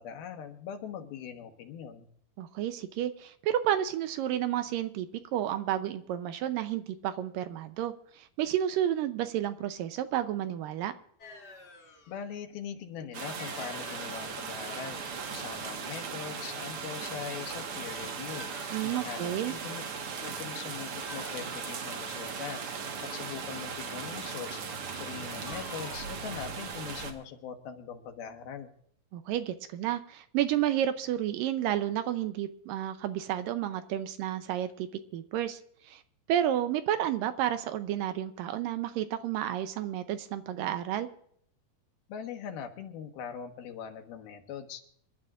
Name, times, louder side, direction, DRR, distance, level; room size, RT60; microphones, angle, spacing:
voice 1, 0.0-2.1 12.1-15.0 15.3-18.5 18.8-19.8 20.2-22.6 23.0-24.6 24.9-28.7 42.1-44.9, left 8 dB, 80° left, 4 dB, 3.2 m, -41 dB
voice 2, 2.4-5.1 5.3-10.9 18.7-19.5 29.1-34.9 35.1-35.6 35.8-36.0 36.3-41.1, right 11 dB, 80° right, 10 dB, 2.2 m, -31 dB
sound 1, 11.2-12.2 13.4-14.7 18.3-19.6 21.0-22.3 25.5-26.0, left 4 dB, 35° left, 1.8 m, -49 dB
sound 2, 13.1-27.1, right 5 dB, 55° right, 1.7 m, -38 dB
27.0 x 12.0 x 2.5 m, 0.65 s
omnidirectional pair, 4.3 m